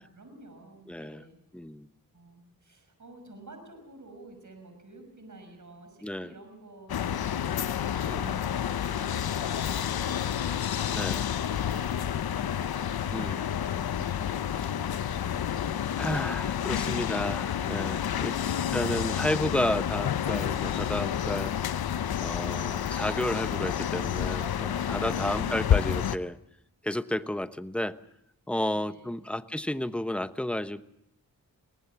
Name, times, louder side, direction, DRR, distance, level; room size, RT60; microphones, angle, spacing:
voice 1, 0.0-1.4 2.1-11.0 11.4-17.4 18.1-18.4 25.0-25.6 28.6-29.3, right 2 dB, 55° right, 6 dB, 5.9 m, -50 dB
voice 2, 0.9-1.2 1.5-1.9 6.0-6.3 8.1-8.4 10.9-11.3 13.1-13.4 16.0-18.3 18.7-21.5 22.2-26.4 26.8-28.0 28.5-30.8, left 1 dB, 5° left, 12 dB, 1.0 m, -32 dB
sound 1, 6.9-26.2, left 9 dB, 80° left, 0.8 m, -29 dB
23.0 x 19.0 x 7.1 m, 0.78 s
cardioid pair, 55°, 36 cm